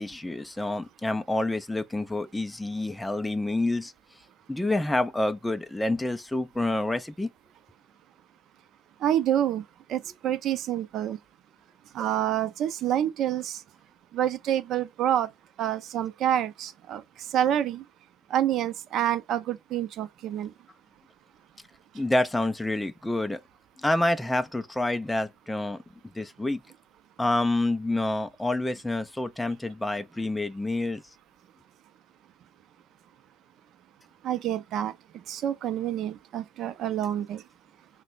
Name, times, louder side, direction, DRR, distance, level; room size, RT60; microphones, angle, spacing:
voice 1, 0.0-3.9 4.5-7.3 21.9-23.4 23.8-25.8 26.1-26.6 27.2-31.0, left 2 dB, 5° left, 0.4 m, -28 dB
voice 2, 9.0-9.6 9.9-11.2 11.9-13.6 14.1-15.3 15.6-17.0 17.3-17.8 18.3-20.5 34.2-34.9 35.3-37.4, right 11 dB, 50° right, 0.5 m, -27 dB
2.9 x 2.1 x 4.0 m
supercardioid pair, 100°, 0 cm